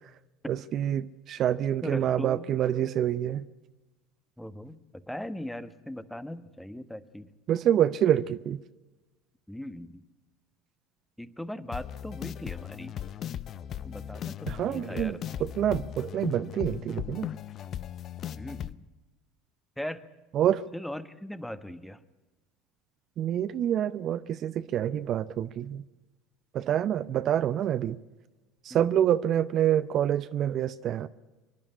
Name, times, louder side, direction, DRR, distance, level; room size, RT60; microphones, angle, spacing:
voice 1, 0.5-3.4 7.5-8.6 14.5-17.3 20.3-20.6 23.2-25.8 26.5-28.0 28.6-31.1, right 10 dB, 50° right, 0.6 m, -27 dB
voice 2, 1.8-2.5 4.4-7.3 9.5-10.0 11.2-13.0 13.8-15.2 18.4-18.9 19.8-20.1 20.7-22.0 28.7-28.9, left 1 dB, 5° left, 1.2 m, -39 dB
sound 1, 11.7-18.7, left 10 dB, 50° left, 0.6 m, -37 dB
25.5 x 11.0 x 9.6 m
hypercardioid pair, 70°, 0 cm